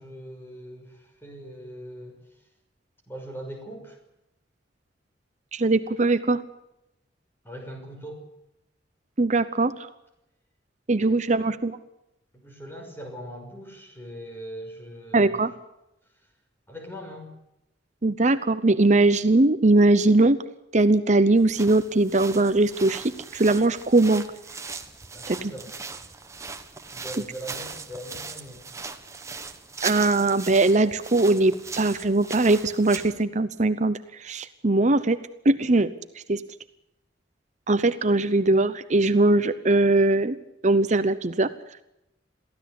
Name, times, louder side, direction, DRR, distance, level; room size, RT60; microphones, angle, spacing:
voice 1, 0.0-2.2 3.1-4.0 7.4-8.2 11.0-11.5 12.3-15.4 16.7-17.3 25.1-25.7 26.9-28.6, equal, 10° left, 2 dB, 6.0 m, -41 dB
voice 2, 5.5-6.4 9.2-9.7 10.9-11.8 15.1-15.5 18.0-20.4 20.7-24.2 25.3-25.5 29.8-35.2 35.4-35.9 36.3-36.4 37.7-40.4 40.6-41.5, right 2 dB, 40° right, 12 dB, 0.8 m, -21 dB
sound 1, 21.4-33.2, right 4 dB, 15° right, 1.4 m, -39 dB
23.0 x 16.0 x 8.5 m, 0.85 s
head